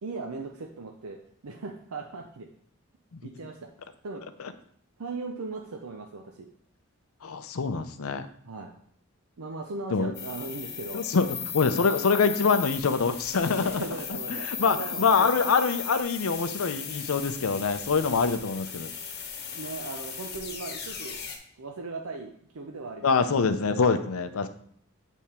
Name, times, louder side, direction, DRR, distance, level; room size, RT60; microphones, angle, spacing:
voice 1, 0.0-2.5 3.2-3.7 4.0-4.2 5.0-6.5 8.4-8.7 9.4-11.0 13.6-15.3 19.5-21.2 21.6-23.1, right 3 dB, 80° right, 3 dB, 0.6 m, -38 dB
voice 2, 7.2-8.3 9.9-10.1 10.9-13.9 14.3-18.9 23.0-24.5, left 5 dB, 75° left, 10 dB, 0.6 m, -25 dB
sound 1, 10.1-21.4, left 7 dB, 45° left, 1.0 m, -37 dB
8.4 x 3.6 x 4.3 m, 0.64 s
head